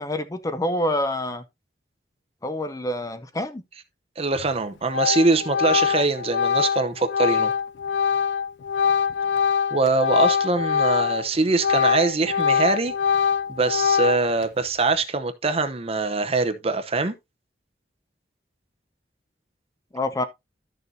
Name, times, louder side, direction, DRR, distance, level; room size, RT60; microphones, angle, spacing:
voice 1, 0.0-1.4 2.4-3.6 19.9-20.2, left 1 dB, 20° left, 0.6 m, -27 dB
voice 2, 4.2-7.5 9.7-17.1, right 3 dB, 35° right, 0.8 m, -23 dB
Organ, 4.4-4.6 4.9-11.3 11.5-14.4, left 7 dB, 75° left, 0.4 m, -23 dB
12.0 x 6.6 x 2.7 m
head